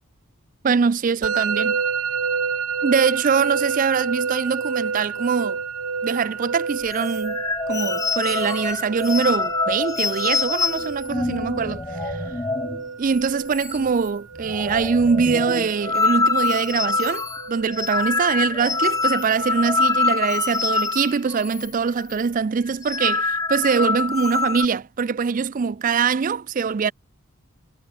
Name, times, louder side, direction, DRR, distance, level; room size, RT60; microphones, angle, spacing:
voice 1, 0.6-1.8 2.8-5.6 6.0-7.4 7.7-12.2 13.0-26.9, right 5 dB, 40° right, 0.4 m, -23 dB
Musical instrument, 1.2-20.1, right 5 dB, 90° right, 1.3 m, -30 dB
sound 1, 6.9-12.8 13.1-13.3 13.5-14.1 14.4-21.7 22.0-22.2 22.7-24.7, left 3 dB, 15° left, 0.6 m, -25 dB
head